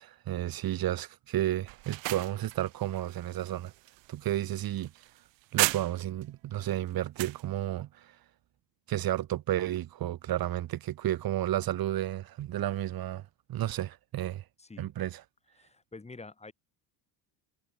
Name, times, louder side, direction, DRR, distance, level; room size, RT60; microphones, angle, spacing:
voice 1, 0.0-3.7 4.1-4.9 5.5-8.2 8.9-13.2 13.5-14.4 14.8-15.2, right 13 dB, 50° right, 2.6 m, -32 dB
sound 1, 1.7-6.2 6.6-7.4, right 24 dB, 75° right, 1.4 m, -35 dB
voice 2, 15.6-16.5, left 3 dB, 15° left, 6.1 m, -47 dB
cardioid pair, 135°, 45 cm